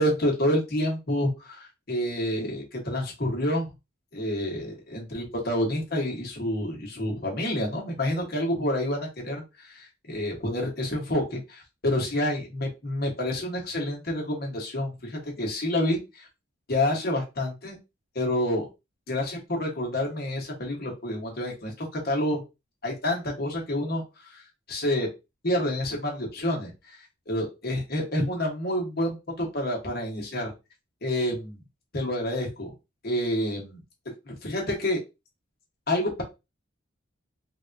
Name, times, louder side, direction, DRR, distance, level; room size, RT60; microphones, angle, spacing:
voice 1, 0.0-3.7 4.1-16.2 16.7-17.8 18.1-18.7 19.1-22.4 22.8-24.0 24.3-24.4 24.7-25.1 25.4-27.0 27.3-30.5 31.0-31.6 31.9-32.7 33.0-33.8 34.3-35.0 35.9-36.2, left 1 dB, 50° left, -1 dB, 1.1 m, -28 dB
3.4 x 2.3 x 2.6 m, 0.25 s
head